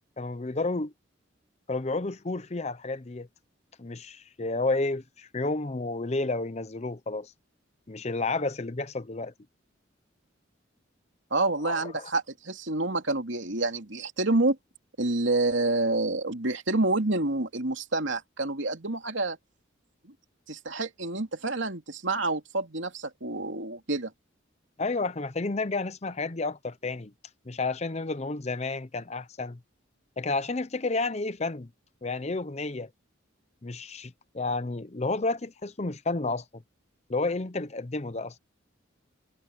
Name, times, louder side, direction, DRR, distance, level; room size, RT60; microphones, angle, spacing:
voice 1, 0.2-0.9 1.7-3.3 3.8-7.3 7.9-9.3 11.6-12.1 24.8-27.1 27.5-29.6 30.2-31.7 32.0-32.9 33.6-36.6 37.1-38.3, left 3 dB, 35° left, 0.7 m, -31 dB
voice 2, 11.3-14.6 15.0-19.4 20.0-20.1 20.5-24.1, right 2 dB, 70° right, 2.8 m, -28 dB
head